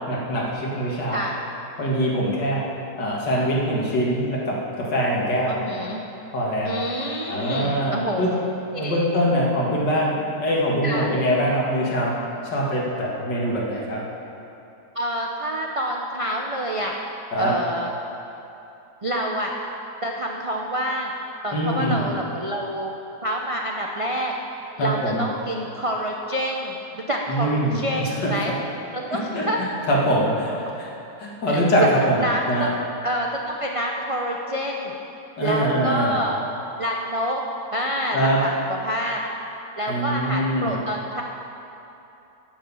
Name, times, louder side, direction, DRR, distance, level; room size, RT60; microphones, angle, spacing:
voice 1, 0.1-1.2 1.8-2.7 3.0-5.6 6.3-6.8 7.3-8.3 8.8-12.2 12.4-14.0 17.3-17.5 21.5-22.0 24.8-25.3 27.3-28.3 29.1-29.5 29.9-30.9 31.2-32.2 32.5-32.7 35.4-36.1 38.1-38.4 39.9-40.7, equal, 85° left, -4 dB, 2.5 m, -23 dB
voice 2, 5.5-6.0 6.6-8.4 8.7-9.1 10.8-11.1 14.9-16.9 17.4-17.9 19.0-19.5 20.0-21.1 21.4-22.9 23.2-24.3 24.8-28.5 28.9-29.6 31.5-31.9 32.2-32.8 33.0-34.9 35.4-36.4 36.8-37.4 37.7-39.2 39.8-41.2, equal, 55° right, -1 dB, 0.3 m, -27 dB
9.4 x 8.8 x 7.0 m, 2.9 s
omnidirectional pair, 1.8 m